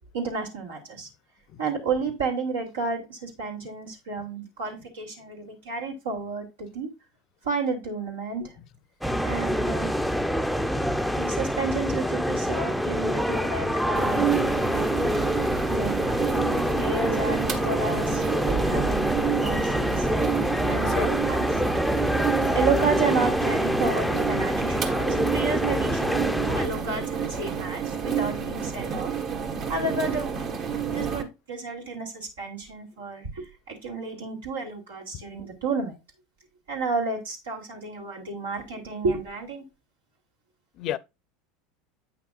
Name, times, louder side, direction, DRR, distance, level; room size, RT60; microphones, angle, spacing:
voice 1, 0.1-1.1 1.6-6.9 7.4-8.5 9.2-9.9 11.2-14.3 15.7-16.0 16.6-18.2 18.5-20.1 20.6-21.6 22.5-29.1 29.7-30.3 30.9-36.0 36.7-39.7, right 4 dB, 85° right, 2.6 m, -31 dB
sound 1, 9.0-26.7, equal, ahead, 0.6 m, -26 dB
sound 2, 13.9-31.2, right 7 dB, 50° right, 1.6 m, -29 dB
voice 2, 20.4-21.3 22.1-22.2 40.8-41.0, left 12 dB, 50° left, 0.6 m, -35 dB
8.6 x 5.9 x 2.4 m
hypercardioid pair, 85°, 0 cm